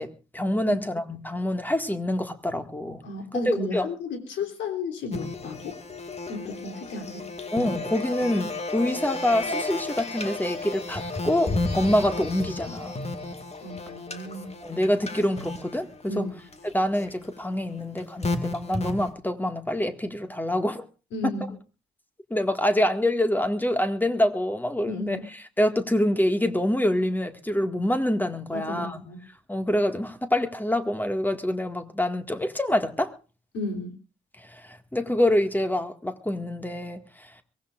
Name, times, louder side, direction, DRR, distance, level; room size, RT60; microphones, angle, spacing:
voice 1, 0.0-3.0 3.3-3.9 7.5-13.0 14.6-16.3 16.7-20.9 21.2-21.3 22.3-25.2 25.6-29.0 29.5-33.1 34.4-37.3, left 1 dB, 10° left, 1.8 m, -26 dB
voice 2, 3.0-5.8 6.3-7.2 13.6-14.5 16.1-16.4 21.1-21.5 24.9-25.2 28.5-29.2 33.5-33.9, left 3 dB, 65° left, 3.2 m, -33 dB
sound 1, 5.1-19.1, left 2 dB, 30° left, 2.0 m, -33 dB
23.0 x 17.0 x 2.5 m
hypercardioid pair, 45°, 20 cm